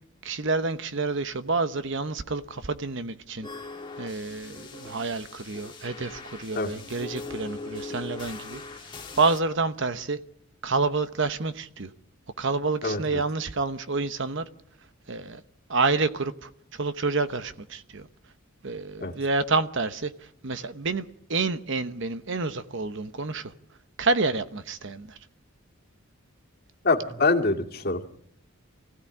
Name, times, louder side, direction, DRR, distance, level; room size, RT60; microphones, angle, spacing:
voice 1, 0.2-3.5 4.0-8.6 9.2-10.2 10.6-11.9 12.4-14.4 15.1-15.4 15.7-18.1 18.6-20.1 20.4-23.5 24.0-25.2, right 3 dB, 55° right, 1.0 m, -28 dB
sound 1, 3.4-9.4, left 3 dB, 20° left, 1.6 m, -40 dB
voice 2, 12.8-13.2 19.0-19.1 26.8-28.0, left 3 dB, 45° left, 2.1 m, -25 dB
25.0 x 16.0 x 9.9 m
head